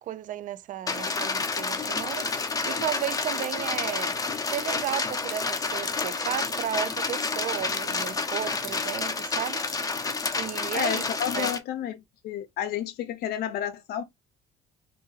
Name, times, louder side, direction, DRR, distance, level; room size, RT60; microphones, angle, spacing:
voice 1, 0.0-4.2 4.4-9.6 10.4-11.0 11.3-11.5, right 11 dB, 50° right, 0.4 m, -34 dB
sound 1, 0.9-11.6, left 4 dB, 20° left, 0.7 m, -29 dB
voice 2, 10.7-14.0, left 10 dB, 70° left, 0.6 m, -31 dB
2.7 x 2.6 x 3.9 m
cardioid pair, 110°, 17 cm